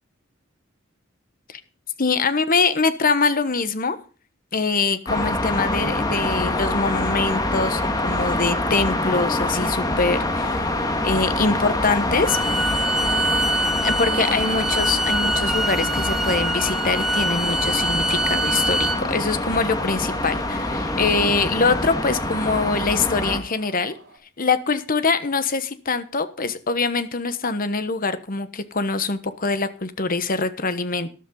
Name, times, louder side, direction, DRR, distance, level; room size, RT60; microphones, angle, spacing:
voice 1, 2.0-4.0 4.5-10.6 11.0-12.4 13.8-23.9 24.4-31.1, left 4 dB, 45° left, 12 dB, 1.2 m, -23 dB
sound 1, 5.1-23.4, left 1 dB, 20° left, 1.8 m, -25 dB
sound 2, 5.8-24.2, right 2 dB, 60° right, 6.7 m, -44 dB
Bowed string instrument, 12.3-19.0, right 1 dB, ahead, 1.1 m, -24 dB
13.5 x 12.0 x 3.9 m, 0.37 s
head